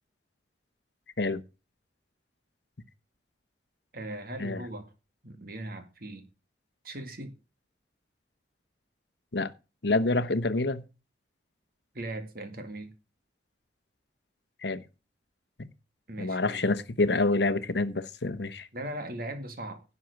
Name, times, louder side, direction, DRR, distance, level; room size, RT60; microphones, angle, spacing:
voice 1, 3.9-4.9 5.2-6.3 6.8-7.3 11.9-12.9 16.1-16.7 18.7-19.8, right 1 dB, 50° right, 2.1 m, -39 dB
voice 2, 9.8-10.8 14.6-14.8 15.6-15.7 16.2-18.7, left 2 dB, 65° left, 1.0 m, -27 dB
11.0 x 6.1 x 6.6 m
head